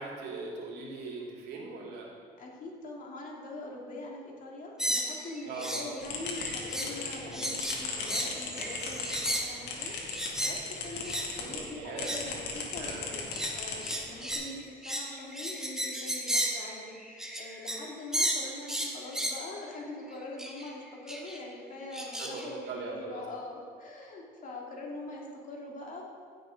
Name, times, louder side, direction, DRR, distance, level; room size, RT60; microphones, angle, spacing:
voice 1, 0.0-2.1 5.4-5.9 11.4-12.2 12.8-13.1 22.2-23.2, right 3 dB, 75° right, -1 dB, 2.6 m, -40 dB
voice 2, 2.4-9.9 10.4-26.0, left 2 dB, 50° left, -2 dB, 2.5 m, -43 dB
sound 1, 4.8-5.9 6.2-7.0 7.3-10.6 11.0-11.3 11.9-12.3 12.9-17.9 18.1-19.4 20.4-20.7 21.1-21.4 21.9-22.5, right 1 dB, 5° right, 1.5 m, -34 dB
sound 2, 6.0-11.6 12.0-14.3, left 4 dB, 90° left, 2.0 m, -37 dB
16.0 x 6.4 x 5.1 m, 2.2 s
cardioid pair, 110°, 17 cm